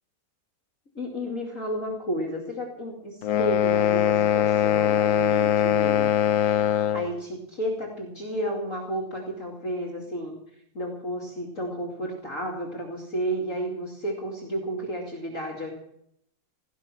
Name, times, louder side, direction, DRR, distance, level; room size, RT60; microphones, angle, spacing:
voice 1, 0.9-6.1 6.9-10.3 10.7-15.7, equal, 45° left, -1 dB, 2.8 m, -32 dB
sound 1, 3.2-7.1, left 10 dB, 85° left, 1.6 m, -22 dB
17.0 x 13.0 x 6.1 m, 0.75 s
omnidirectional pair, 2.0 m